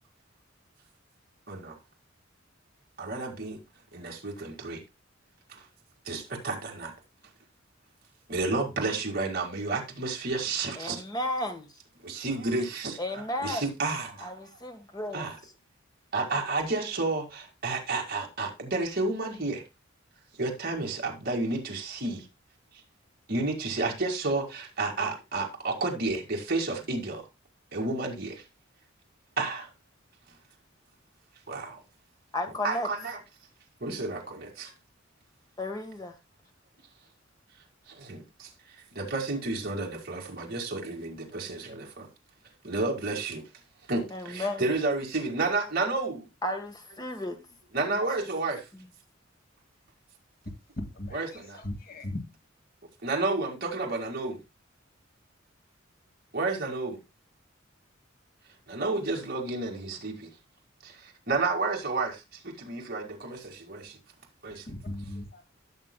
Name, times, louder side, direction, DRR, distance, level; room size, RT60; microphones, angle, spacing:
voice 1, 1.5-1.8 3.0-3.6 3.9-4.8 5.5-5.6 6.1-6.9 8.3-11.0 12.0-13.0 13.4-14.3 15.1-15.4 16.1-19.6 20.4-22.3 23.3-27.3 27.7-28.4 29.4-29.7 31.5-31.8 32.6-33.2 33.8-34.7 37.9-38.5 38.9-42.1 42.6-43.4 43.9-46.3 47.7-48.6 51.1-51.6 53.0-54.4 56.3-57.0 58.7-60.3 60.8-64.0 64.4-64.7, right 3 dB, 50° right, 2.0 m, -31 dB
voice 2, 10.8-11.7 13.0-13.6 14.2-15.2 32.3-32.9 35.6-36.1 44.1-44.6 46.4-47.4 47.9-48.0, left 1 dB, 20° left, 1.3 m, -33 dB
voice 3, 50.8-52.3 64.7-65.4, left 1 dB, 50° left, 1.9 m, -38 dB
14.5 x 6.6 x 2.2 m
head